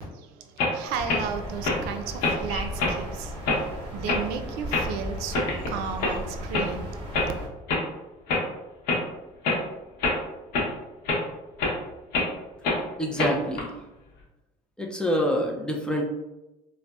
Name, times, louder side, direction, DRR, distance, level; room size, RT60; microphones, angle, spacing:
voice 1, 0.1-3.7 3.9-6.9, right 6 dB, 90° right, 6 dB, 0.4 m, -34 dB
sound 1, 0.6-0.7 1.1-1.2 1.6-1.8 2.2-2.4 2.8-3.0 3.5-3.6 4.1-4.2 4.7-4.9 5.3-5.7 6.0-6.1 6.5-6.7 7.1-7.3 7.7-7.8 8.3-8.4 8.9-9.0 9.4-9.6 10.0-10.2 10.5-10.7 11.1-11.2 11.6-11.7 12.1-12.3 12.6-12.8 13.2-13.6, left 3 dB, 80° left, 0.8 m, -25 dB
sound 2, 0.9-7.5, equal, 35° right, 1.0 m, -36 dB
voice 2, 13.0-13.7 14.8-16.0, equal, 5° left, 0 dB, 0.4 m, -26 dB
3.8 x 2.0 x 2.3 m, 1.0 s
cardioid pair, 140°, 16 cm